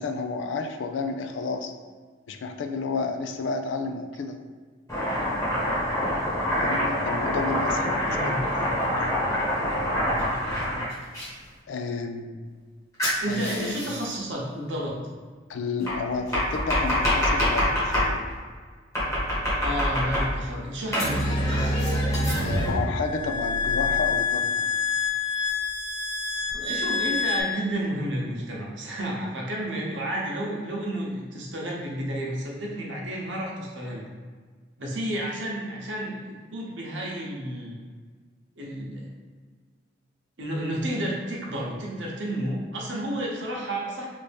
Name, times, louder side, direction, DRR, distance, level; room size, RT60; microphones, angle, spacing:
voice 1, 0.0-1.7 2.3-4.4 6.6-8.4 11.7-12.4 13.3-13.7 15.5-18.3 22.4-24.7, left 4 dB, 90° left, 6 dB, 0.4 m, -31 dB
Domestic sounds home sounds, 4.9-11.3 13.0-14.1 15.9-18.1 18.9-20.5 20.9-22.7, equal, 15° left, 1.1 m, -26 dB
voice 2, 8.0-8.4 13.2-15.0 19.6-22.0 26.3-34.1 34.8-37.8 38.6-39.1 40.4-44.1, right 1 dB, 80° right, -3 dB, 0.8 m, -31 dB
sound 1, 21.0-27.4, left 3 dB, 45° right, 0.3 m, -26 dB
3.3 x 2.6 x 3.4 m, 1.5 s
head